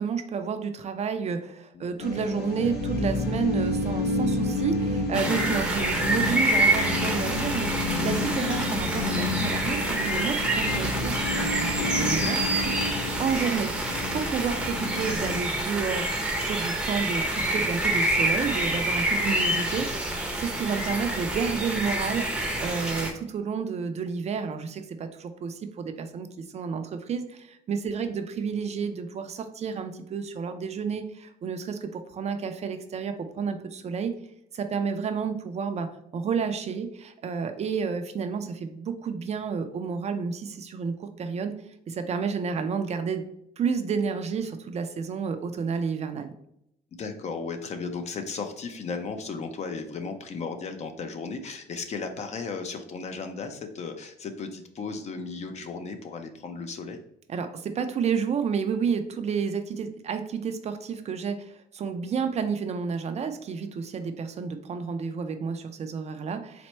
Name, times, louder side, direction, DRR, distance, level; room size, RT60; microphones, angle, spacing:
voice 1, 0.0-12.7 13.2-20.0 20.3-34.2 34.5-41.6 41.9-43.2 43.6-46.4 57.3-66.7, right 6 dB, 40° right, 8 dB, 0.4 m, -30 dB
sound 1, 2.0-15.4, left 2 dB, 75° left, 1.0 m, -30 dB
sound 2, 5.1-23.1, right 1 dB, 5° right, 0.7 m, -27 dB
voice 2, 46.9-57.0, left 4 dB, 40° left, 6 dB, 0.6 m, -35 dB
4.3 x 2.1 x 4.2 m, 0.78 s
cardioid pair, 110°, 17 cm